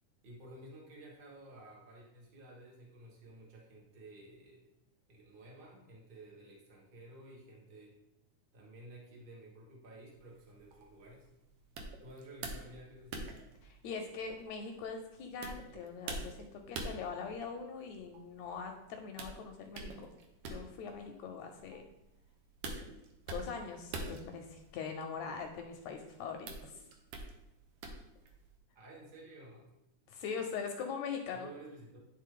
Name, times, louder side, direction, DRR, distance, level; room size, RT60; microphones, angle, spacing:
voice 1, 0.2-4.6 5.1-7.9 8.5-11.3 12.0-13.3 28.7-29.7 31.3-32.1, right 1 dB, 50° right, -4 dB, 0.6 m, -53 dB
sound 1, 10.1-28.6, right 2 dB, 75° right, 1.5 m, -47 dB
voice 2, 13.6-20.1 20.5-21.8 23.3-26.8 30.1-31.5, left 5 dB, 80° left, 4 dB, 1.7 m, -42 dB
10.5 x 3.5 x 3.7 m, 0.90 s
omnidirectional pair, 3.6 m